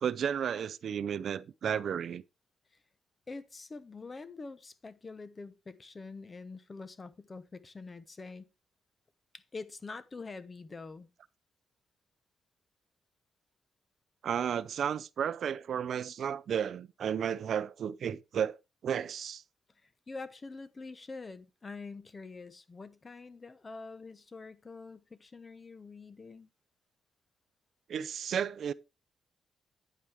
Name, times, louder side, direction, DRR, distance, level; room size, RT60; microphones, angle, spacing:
voice 1, 0.0-2.2 14.2-18.6 18.8-19.4 27.9-28.7, right 8 dB, 60° right, 0.5 m, -33 dB
voice 2, 3.3-8.5 9.3-11.1 20.1-26.5, left 3 dB, 25° left, 1.0 m, -45 dB
9.6 x 8.7 x 3.5 m
cardioid pair, 120°, 0 cm